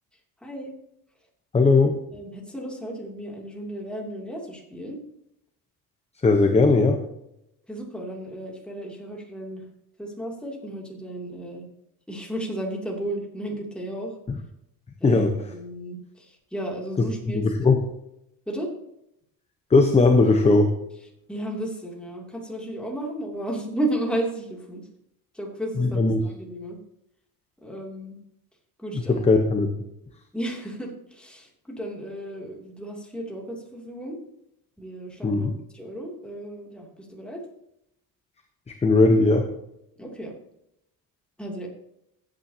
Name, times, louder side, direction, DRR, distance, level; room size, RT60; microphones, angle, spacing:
voice 1, 0.4-0.7 2.1-5.0 7.7-9.6 10.0-11.7 12.1-14.1 15.0-16.0 16.5-17.4 18.5-18.7 21.3-24.8 25.3-26.8 27.6-28.2 28.8-29.3 30.3-34.2 34.8-35.5 35.7-37.4 40.0-40.3 41.4-41.7, right 1 dB, 5° left, -2 dB, 2.7 m, -33 dB
voice 2, 1.5-1.9 6.2-7.0 14.3-14.4 15.0-15.3 17.0-17.8 19.7-20.7 25.8-26.2 28.9-29.7 35.2-35.5 38.8-39.5, left 3 dB, 20° left, 5 dB, 0.9 m, -19 dB
15.5 x 8.9 x 2.8 m, 0.80 s
cardioid pair, 140°, 35 cm